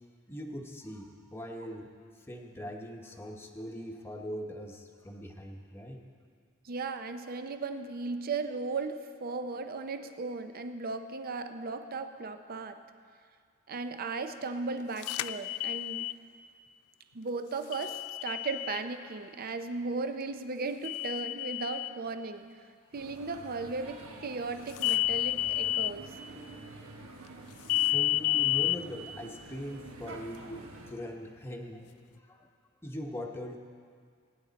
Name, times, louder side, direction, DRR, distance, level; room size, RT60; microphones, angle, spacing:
voice 1, 0.3-1.9 2.2-6.0 27.9-32.5 32.8-33.6, equal, 10° left, 1 dB, 1.0 m, -41 dB
voice 2, 6.7-12.8 13.7-16.1 17.1-22.5 22.9-26.1, right 4 dB, 45° right, 8 dB, 0.6 m, -36 dB
sound 1, 15.0-16.2 17.7-18.8 20.8-21.9 24.8-25.9 27.7-28.8, left 16 dB, 85° left, 0.3 m, -30 dB
sound 2, 22.9-30.9, right 2 dB, 75° right, 1.3 m, -48 dB
20.0 x 9.4 x 4.1 m, 2.1 s
head